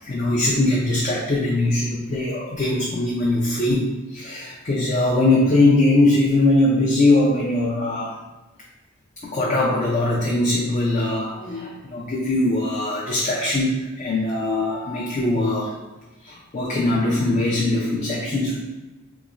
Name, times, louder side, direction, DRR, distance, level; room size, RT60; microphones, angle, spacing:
voice 1, 0.0-8.1 9.3-15.7 16.2-18.6, left 2 dB, 35° left, -4 dB, 0.4 m, -21 dB
3.6 x 3.0 x 2.5 m, 1.1 s
head